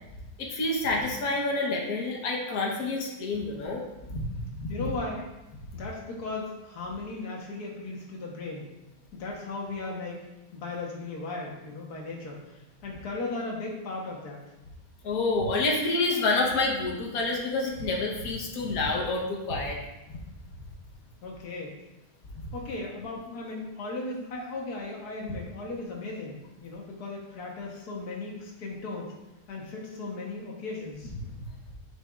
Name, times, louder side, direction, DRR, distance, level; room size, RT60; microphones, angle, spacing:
voice 1, 0.4-3.8 4.1-4.7 15.0-19.8, left 2 dB, 70° left, -1 dB, 1.7 m, -28 dB
voice 2, 4.7-5.2 5.7-8.7 9.1-10.2 10.5-14.4 21.2-21.8 22.5-29.1 29.5-31.1, left 3 dB, 85° left, -1 dB, 1.8 m, -36 dB
11.0 x 5.6 x 2.5 m, 0.99 s
omnidirectional pair, 1.6 m